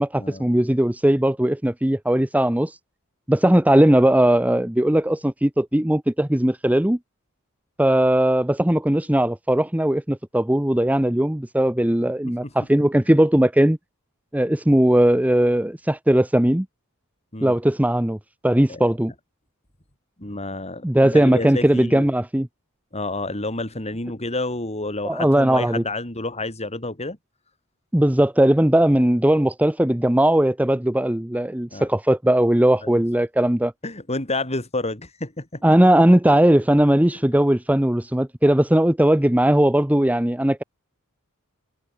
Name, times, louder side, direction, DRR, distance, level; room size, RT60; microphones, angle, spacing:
voice 1, 0.0-2.8 3.3-7.0 7.8-13.8 14.3-16.7 17.4-18.2 18.4-19.1 20.8-22.5 25.0-25.8 27.9-33.7 35.6-40.6, right 1 dB, 5° right, 0.8 m, -18 dB
voice 2, 20.2-22.1 22.9-27.2 31.7-31.9 32.8-32.9 33.8-35.6, left 2 dB, 30° left, 4.7 m, -29 dB
head